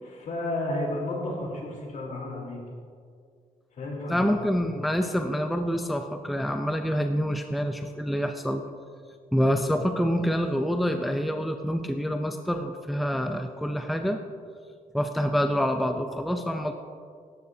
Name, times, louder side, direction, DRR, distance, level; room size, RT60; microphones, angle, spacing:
voice 1, 0.0-2.6 3.7-4.6, left 1 dB, 65° left, -2 dB, 3.7 m, -32 dB
voice 2, 4.1-8.6 9.3-14.2 14.9-16.7, equal, ahead, 5 dB, 0.5 m, -26 dB
17.5 x 13.5 x 2.8 m, 2.2 s
wide cardioid pair, 155°, 14 cm